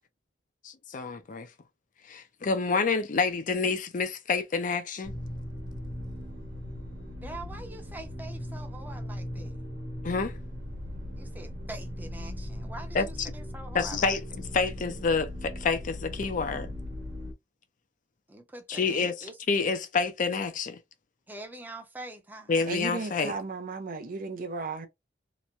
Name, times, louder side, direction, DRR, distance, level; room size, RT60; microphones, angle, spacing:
voice 1, 0.6-1.5 2.1-5.1 9.4-9.5 10.0-10.3 12.9-13.3 13.7-14.2 14.5-16.7 18.7-20.8 22.5-23.3, left 4 dB, 50° left, 0.5 m, -28 dB
sound 1, 5.0-17.3, left 1 dB, 70° right, 1.1 m, -38 dB
voice 2, 7.2-9.6 11.2-14.1 18.3-19.3 21.3-22.5, right 2 dB, 10° right, 0.6 m, -44 dB
voice 3, 22.7-24.9, right 3 dB, 50° right, 0.5 m, -35 dB
2.9 x 2.1 x 2.5 m
head